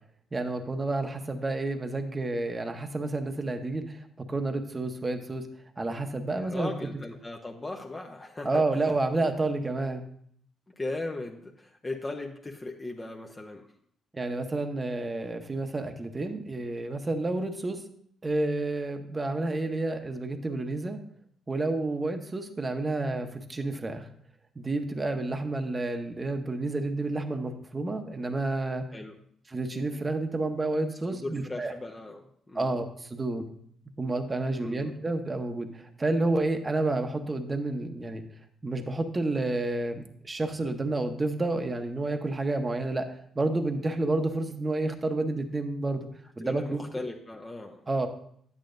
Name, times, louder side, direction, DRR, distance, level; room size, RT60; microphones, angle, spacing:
voice 1, 0.3-5.5 5.8-6.7 8.4-10.1 14.1-17.8 18.2-21.0 21.5-24.0 24.6-28.8 29.5-31.7 32.5-33.4 34.0-38.2 38.6-43.1 43.3-46.1 46.4-46.8 47.9-48.1, right 2 dB, 25° right, 6 dB, 0.9 m, -30 dB
voice 2, 6.3-9.0 10.7-13.7 28.9-29.2 31.1-32.7 34.6-34.9 46.4-47.8, left 2 dB, 25° left, 1 dB, 0.8 m, -38 dB
10.5 x 8.6 x 2.6 m, 0.65 s
cardioid pair, 90°, 0 cm